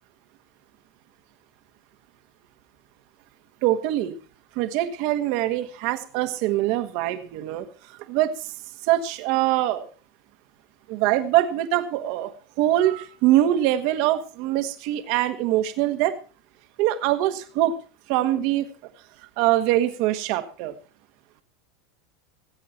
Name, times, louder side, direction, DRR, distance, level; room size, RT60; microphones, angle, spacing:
voice 1, 3.6-4.1 4.5-7.6 8.1-8.5 8.8-9.9 10.9-12.3 12.6-16.1 16.8-17.7 18.1-18.6 19.4-20.7, right 13 dB, 60° right, 9 dB, 1.6 m, -23 dB
20.0 x 8.4 x 4.4 m, 0.38 s
hypercardioid pair, 95°, 0 cm